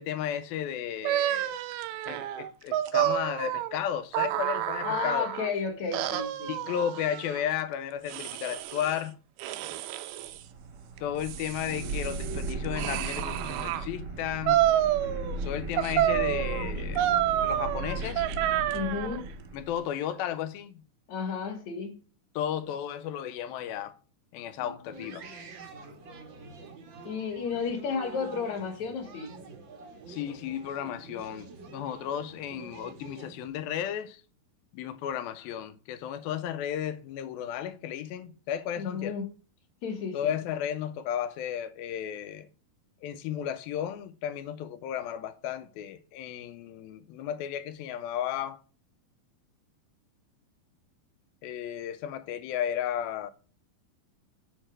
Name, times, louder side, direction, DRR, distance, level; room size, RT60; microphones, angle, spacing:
voice 1, 0.0-1.6 2.1-5.3 6.5-9.2 11.0-14.6 15.4-17.1 17.4-18.3 19.5-20.8 22.4-24.0 24.3-25.2 30.1-34.2 34.7-39.1 40.1-42.5 43.0-48.6 51.4-53.3, left 10 dB, 85° left, 2.4 m, -34 dB
sound 1, 1.0-5.5 5.9-7.5 8.1-9.0 9.4-10.4 11.0-13.9 14.5-15.4 15.8-19.2, right 12 dB, 85° right, 2.6 m, -29 dB
voice 2, 4.8-6.6 18.7-19.3 21.1-22.0 24.6-25.1 27.0-29.3 38.8-39.3 39.8-40.3, left 6 dB, 55° left, 2.5 m, -33 dB
sound 2, 10.2-19.8, right 2 dB, 50° right, 1.2 m, -37 dB
sound 3, 24.9-33.5, right 4 dB, 70° right, 1.1 m, -47 dB
7.8 x 4.6 x 6.1 m
omnidirectional pair, 4.3 m